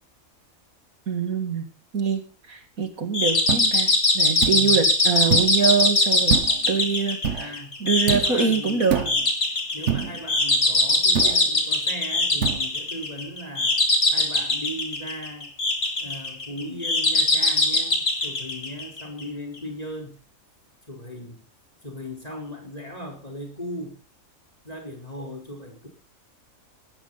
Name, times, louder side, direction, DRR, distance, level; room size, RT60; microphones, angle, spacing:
voice 1, 1.1-1.7 1.9-2.2 2.5-6.4 6.7-9.0, right 6 dB, 80° right, 7 dB, 2.8 m, -24 dB
sound 1, 3.1-19.2, left 2 dB, 65° left, 3.4 m, -22 dB
sound 2, 3.5-3.7 4.4-4.7 5.3-5.6 6.3-6.7 7.2-7.5 8.1-8.4 8.9-9.2 9.9-10.2 11.1-11.5 12.4-12.6, right 7 dB, 60° right, 1.3 m, -26 dB
voice 2, 4.5-4.9 7.4-7.8 8.1-9.2 9.7-13.8 14.1-15.5 16.0-20.2 20.9-21.5 21.8-24.0 24.6-25.9, equal, 25° left, 2 dB, 4.6 m, -37 dB
17.5 x 13.5 x 4.1 m, 0.35 s
omnidirectional pair, 1.4 m